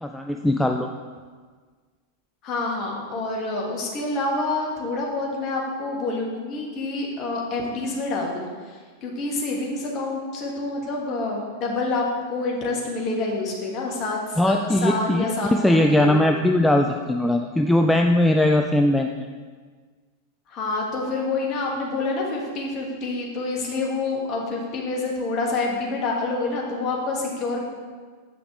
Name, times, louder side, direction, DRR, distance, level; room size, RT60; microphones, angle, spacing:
voice 1, 0.0-0.9 14.4-19.3, left 1 dB, 5° left, 3 dB, 0.3 m, -20 dB
voice 2, 2.4-16.2 20.5-27.6, left 3 dB, 35° left, -2 dB, 1.6 m, -27 dB
7.7 x 5.8 x 3.6 m, 1.5 s
figure-of-eight pair, 90°, 0 cm